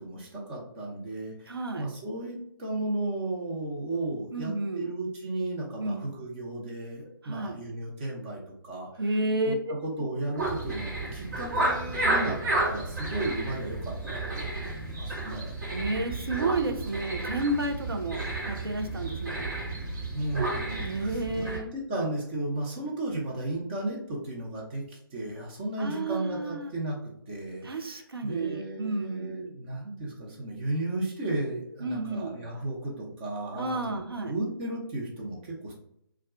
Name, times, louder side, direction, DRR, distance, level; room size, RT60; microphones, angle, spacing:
voice 1, 0.0-9.0 9.5-15.5 20.1-35.7, right 2 dB, 25° right, -2 dB, 0.7 m, -34 dB
voice 2, 1.5-1.9 4.3-4.9 5.8-6.1 7.2-7.6 9.0-9.7 15.7-19.5 20.8-21.7 25.8-26.7 27.6-29.5 31.8-32.4 33.5-34.3, right 2 dB, 85° right, 4 dB, 0.5 m, -31 dB
sound 1, 10.4-21.6, right 2 dB, 50° right, 1.1 m, -32 dB
2.3 x 2.2 x 3.6 m, 0.74 s
figure-of-eight pair, 145°, 12 cm